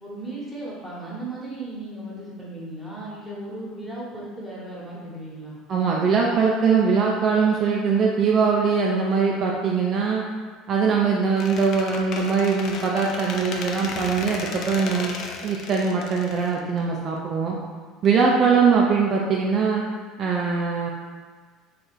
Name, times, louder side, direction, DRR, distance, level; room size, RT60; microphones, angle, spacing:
voice 1, 0.0-5.6, right 2 dB, 5° left, -7 dB, 1.3 m, -36 dB
voice 2, 5.7-10.2 10.7-15.1 15.4-17.6 18.0-19.8 20.2-20.9, right 5 dB, 40° right, -2 dB, 0.4 m, -21 dB
Squeak, 11.4-17.2, left 4 dB, 45° left, 0.3 m, -35 dB
3.8 x 2.4 x 3.6 m, 1.5 s
figure-of-eight pair, 65°, 0 cm